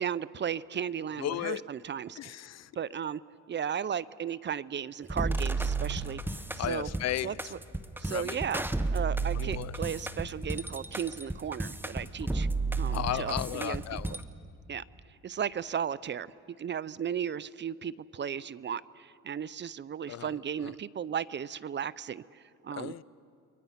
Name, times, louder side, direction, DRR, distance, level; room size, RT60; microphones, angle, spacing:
voice 1, 0.0-2.3 2.8-3.2 3.5-6.2 6.6-6.9 7.2-7.6 8.0-8.6 8.9-12.5 12.8-13.8 14.7-14.8 15.2-16.3 16.6-22.9, right 8 dB, 40° right, 0.5 m, -35 dB
voice 2, 1.2-1.6 2.2-2.7 6.6-7.4 8.1-8.4 9.3-9.7 12.9-14.2 20.1-20.3 22.7-23.0, left 12 dB, 60° left, 0.6 m, -34 dB
sound 1, 5.1-14.2, right 3 dB, 5° right, 0.9 m, -32 dB
29.5 x 23.0 x 5.7 m
cardioid pair, 90°, 30 cm